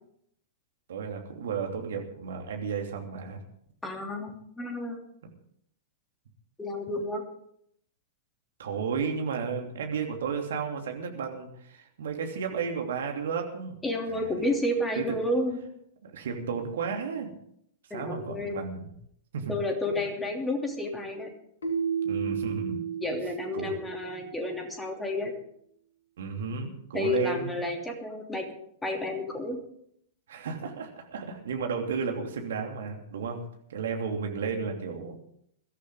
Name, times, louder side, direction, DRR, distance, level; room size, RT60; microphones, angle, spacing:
voice 1, 0.9-3.4 8.6-13.8 14.1-14.3 15.0-15.2 16.0-17.3 17.9-18.8 19.3-19.5 22.0-22.8 23.5-23.8 26.2-27.5 30.3-33.4 33.7-35.2, right 6 dB, 60° right, 3 dB, 2.9 m, -33 dB
voice 2, 3.8-5.0 6.6-7.2 13.8-15.6 17.9-18.6 19.5-21.3 23.0-25.3 26.9-28.5 28.8-29.6, left 1 dB, 10° left, 3 dB, 3.0 m, -31 dB
Keyboard (musical), 21.6-24.5, right 7 dB, 65° left, 2.8 m, -32 dB
22.0 x 13.5 x 3.8 m, 0.69 s
figure-of-eight pair, 100°, 0 cm